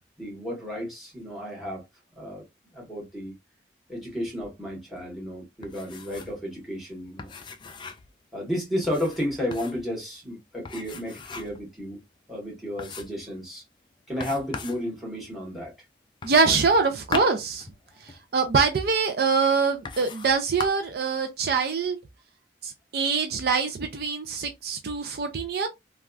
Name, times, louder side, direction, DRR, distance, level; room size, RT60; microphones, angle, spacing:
voice 1, 0.2-1.8 2.1-2.4 2.7-3.3 3.9-7.3 8.3-12.0 12.3-13.6 14.1-15.7, equal, ahead, 1.4 m, -32 dB
sound 1, 5.6-6.4 6.7-6.8 7.2-8.1 8.8-9.9 10.6-11.7 12.1-12.2 12.8-13.3 14.2-14.8 16.2-18.2 19.0-19.1 19.8-20.3 20.6-21.0, left 4 dB, 25° left, 0.3 m, -38 dB
voice 2, 16.2-17.7 18.0-22.0 22.6-25.7, right 4 dB, 60° right, 0.4 m, -24 dB
3.2 x 2.3 x 2.4 m
head